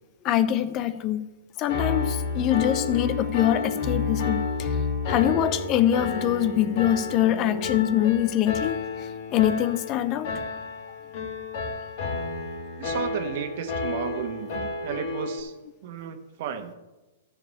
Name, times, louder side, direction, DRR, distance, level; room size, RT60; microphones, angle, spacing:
voice 1, 0.2-1.2 1.6-4.7 5.1-10.3, left 11 dB, 35° left, 0.7 m, -24 dB
Piano, 1.7-15.4, left 4 dB, 50° left, 2.4 m, -30 dB
voice 2, 12.8-15.5 15.8-16.7, right 7 dB, 55° right, 1.5 m, -33 dB
13.0 x 4.9 x 8.4 m
hypercardioid pair, 125°, 0 cm